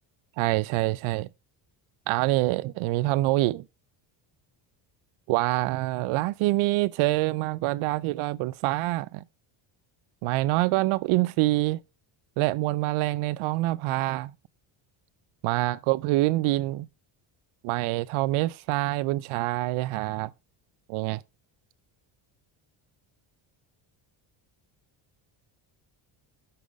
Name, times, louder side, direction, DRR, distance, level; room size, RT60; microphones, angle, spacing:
voice 1, 0.4-1.3 2.1-3.6 5.3-9.2 10.2-11.8 12.4-14.3 15.4-16.9 17.6-20.3 20.9-21.2, right 18 dB, 80° right, 0.6 m, -26 dB
9.7 x 5.6 x 5.1 m
cardioid pair, 105°, 49 cm